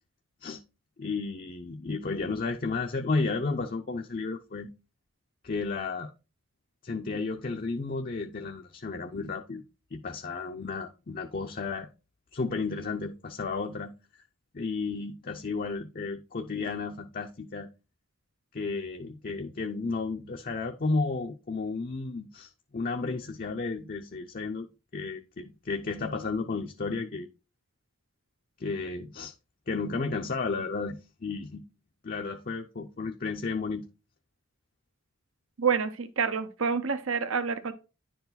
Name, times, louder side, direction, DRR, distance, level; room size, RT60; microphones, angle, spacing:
voice 1, 1.0-4.7 5.4-6.1 6.8-9.6 9.9-11.9 12.3-13.9 14.5-17.7 18.5-24.7 24.9-27.3 28.6-29.3 29.7-31.6 32.0-33.9, left 4 dB, 40° left, 0.6 m, -33 dB
voice 2, 35.6-37.7, right 6 dB, 65° right, 0.8 m, -28 dB
10.5 x 4.7 x 4.0 m
head